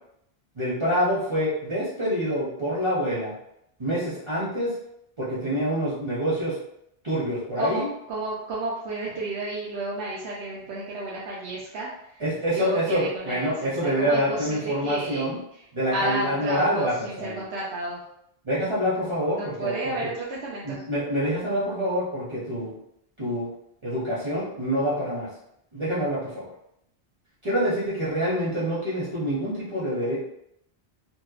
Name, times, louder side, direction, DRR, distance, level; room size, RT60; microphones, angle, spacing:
voice 1, 0.5-3.3 3.8-4.7 5.2-6.5 7.0-7.9 12.2-15.4 15.7-17.4 18.4-20.1 20.6-22.8 23.2-23.5 23.8-25.3 25.7-26.5 27.4-30.2, equal, 30° right, -9 dB, 0.6 m, -26 dB
voice 2, 7.6-11.9 12.5-15.2 15.9-18.0 19.3-20.8, right 2 dB, 80° right, -6 dB, 0.8 m, -32 dB
2.8 x 2.0 x 2.3 m, 0.76 s
omnidirectional pair, 1.1 m